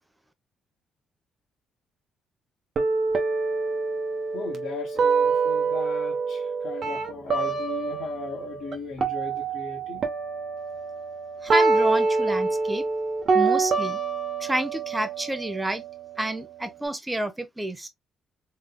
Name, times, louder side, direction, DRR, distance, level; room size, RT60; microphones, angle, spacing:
sound 1, 2.8-8.7 9.0-16.8, right 4 dB, 50° right, 1.0 m, -26 dB
voice 1, 4.3-10.1, left 5 dB, 70° left, 1.3 m, -37 dB
voice 2, 11.4-12.9 13.3-14.0 14.4-15.8 16.2-17.9, right 1 dB, 10° right, 0.8 m, -29 dB
3.7 x 3.3 x 2.2 m
cardioid pair, 90°, 0 cm